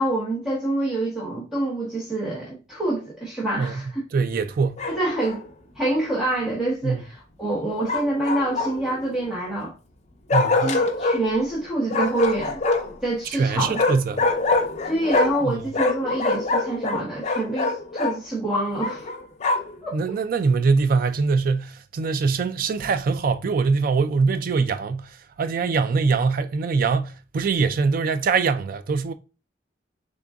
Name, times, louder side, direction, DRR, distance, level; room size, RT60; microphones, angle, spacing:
voice 1, 0.0-4.0 4.9-5.4 5.8-9.7 10.6-12.6 13.0-13.9 14.8-19.1 19.8-19.9, right 1 dB, ahead, 0.9 m, -26 dB
voice 2, 4.1-4.8 6.8-7.0 10.3-10.8 13.3-14.2 15.4-15.6 19.9-29.1, right 4 dB, 50° right, 0.3 m, -23 dB
Bark, 4.8-5.4 7.9-9.0 10.3-11.2 11.9-13.0 13.7-15.5 15.7-18.2 18.8-19.8, left 3 dB, 40° left, 0.6 m, -24 dB
3.7 x 3.6 x 2.2 m
head